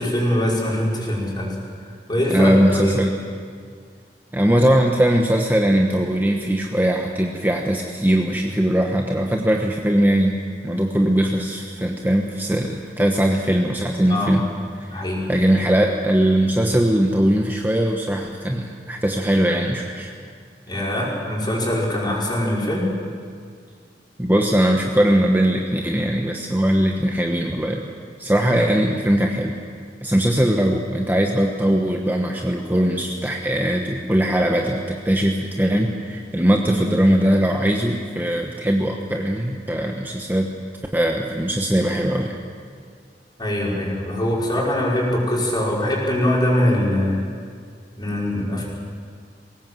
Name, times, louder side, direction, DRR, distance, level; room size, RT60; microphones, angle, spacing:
voice 1, 0.0-1.6 2.1-2.9 14.1-14.4 14.9-15.2 20.7-22.9 36.6-36.8 43.4-47.2 48.0-48.6, left 1 dB, 25° left, -4 dB, 5.3 m, -22 dB
voice 2, 2.3-3.1 4.3-10.4 10.6-14.4 14.9-15.0 15.3-20.1 24.2-27.9 28.2-29.5 30.0-40.5 40.9-42.4, right 1 dB, 10° right, 1 dB, 1.2 m, -20 dB
21.0 x 18.0 x 7.8 m, 2.1 s
head